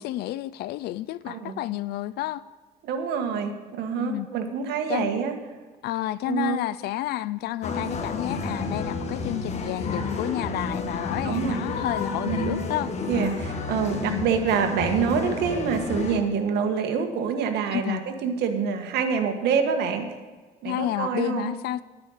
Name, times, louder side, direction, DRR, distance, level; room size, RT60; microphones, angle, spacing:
voice 1, 0.0-2.4 4.0-4.3 4.9-5.1 5.8-12.9 14.0-14.3 17.7-18.0 20.6-21.8, left 15 dB, 70° left, 0.4 m, -30 dB
voice 2, 1.3-1.6 2.8-5.3 6.3-6.6 11.2-11.6 12.2-12.6 13.1-20.1 20.6-21.5, right 6 dB, 80° right, 1.5 m, -26 dB
sound 1, 7.6-16.2, left 3 dB, 40° left, 1.6 m, -31 dB
10.0 x 9.5 x 6.4 m
cardioid pair, 110°, 17 cm